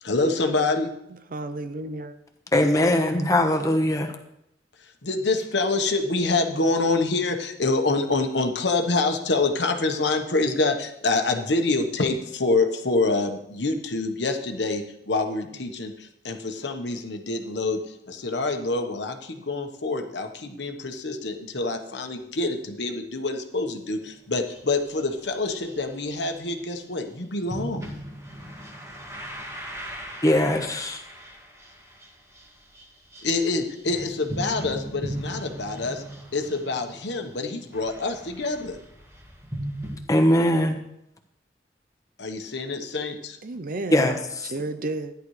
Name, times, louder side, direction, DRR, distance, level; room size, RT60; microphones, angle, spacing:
voice 1, 0.0-0.9 5.0-27.9 33.2-36.0 36.3-38.8 42.2-43.4, left 3 dB, 75° left, 1.2 m, -26 dB
voice 2, 1.3-2.1 43.4-44.1 44.5-45.1, right 2 dB, 50° right, 0.6 m, -32 dB
voice 3, 2.5-4.1 30.2-31.0 40.1-40.8 43.9-44.5, left 1 dB, 20° left, 1.2 m, -21 dB
sound 1, 24.0-24.1 24.4-26.8 27.4-40.0, equal, 15° right, 1.9 m, -39 dB
13.5 x 10.5 x 3.2 m
head